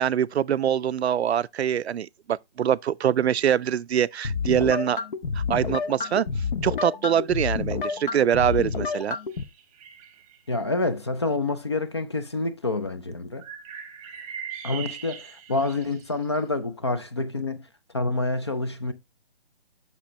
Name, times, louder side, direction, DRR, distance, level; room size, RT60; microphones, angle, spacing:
voice 1, 0.0-5.0 5.3-6.3 6.6-9.2, right 9 dB, 75° right, 0.5 m, -24 dB
sound 1, 4.2-9.4, left 5 dB, 50° left, 0.9 m, -29 dB
sound 2, 8.4-10.4 13.4-16.4, right 8 dB, 15° right, 1.0 m, -41 dB
voice 2, 10.5-13.5 14.6-17.7 17.9-18.9, left 2 dB, 25° left, 0.4 m, -27 dB
7.3 x 6.2 x 3.0 m
hypercardioid pair, 155°, 33 cm